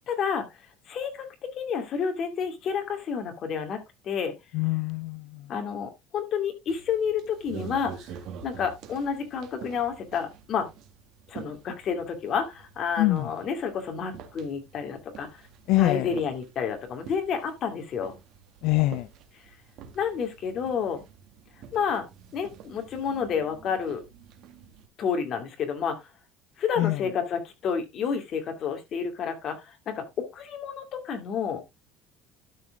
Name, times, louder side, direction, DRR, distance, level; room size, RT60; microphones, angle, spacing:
voice 1, 0.1-0.5 0.9-4.3 5.5-8.1 8.4-10.7 11.3-15.3 15.7-18.2 19.9-21.0 21.7-22.0 22.3-24.0 25.0-26.1 26.6-31.6, left 6 dB, 35° left, 2.4 m, -30 dB
voice 2, 4.5-5.2 13.0-13.2 15.7-16.1 18.6-19.0 26.8-27.0, left 18 dB, 60° left, 0.4 m, -23 dB
sound 1, 6.7-24.9, right 7 dB, 55° right, 1.8 m, -47 dB
12.5 x 4.7 x 3.7 m
cardioid pair, 165°, 0 cm